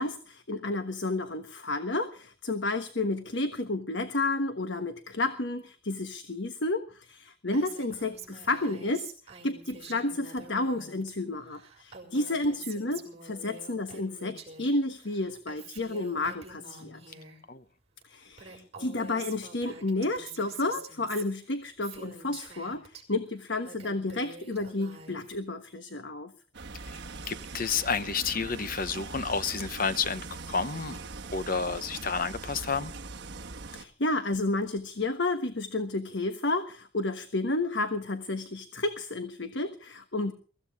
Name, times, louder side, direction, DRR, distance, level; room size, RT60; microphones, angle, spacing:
voice 1, 0.0-9.1 9.4-17.0 18.0-26.3 33.7-40.3, left 2 dB, 60° left, 1.3 m, -31 dB
Female speech woman speaking, 7.5-11.1 11.4-14.7 15.0-17.4 18.0-18.1 18.3-23.0 23.4-25.4, right 5 dB, 30° right, 5.9 m, -47 dB
sound 1, 26.5-33.9, right 3 dB, 60° right, 1.3 m, -41 dB
voice 2, 27.3-31.0 31.3-32.9, left 5 dB, 45° left, 0.8 m, -30 dB
23.5 x 15.0 x 3.6 m
head